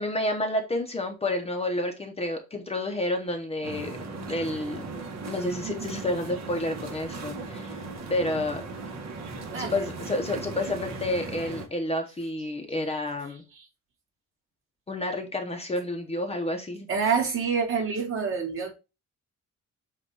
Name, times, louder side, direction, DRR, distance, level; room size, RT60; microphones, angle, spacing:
voice 1, 0.0-4.0 4.3-4.9 5.3-7.8 8.1-8.6 9.6-13.4 14.9-16.9, left 1 dB, 20° left, 0.9 m, -30 dB
sound 1, 3.6-11.7, right 3 dB, 60° right, 1.5 m, -37 dB
voice 2, 9.5-9.9 13.6-13.7 16.9-18.7, right 5 dB, 45° right, 1.9 m, -27 dB
7.8 x 2.6 x 4.7 m
cardioid pair, 165°, 30 cm